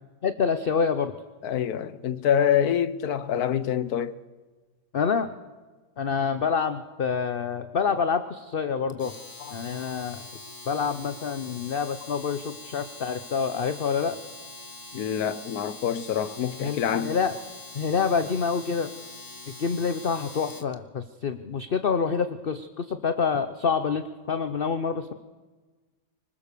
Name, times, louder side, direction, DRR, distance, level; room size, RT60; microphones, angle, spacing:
voice 1, 0.2-1.1 4.9-5.3 6.0-9.1 9.5-10.2 10.7-14.2 16.6-17.4 17.7-18.9 19.5-25.1, left 6 dB, 45° left, 0.7 m, -27 dB
voice 2, 1.4-4.2 9.4-9.6 14.9-17.2, left 9 dB, 65° left, 1.3 m, -26 dB
Domestic sounds home sounds, 8.9-20.7, left 2 dB, 15° left, 0.9 m, -43 dB
25.5 x 19.5 x 6.8 m
omnidirectional pair, 1.8 m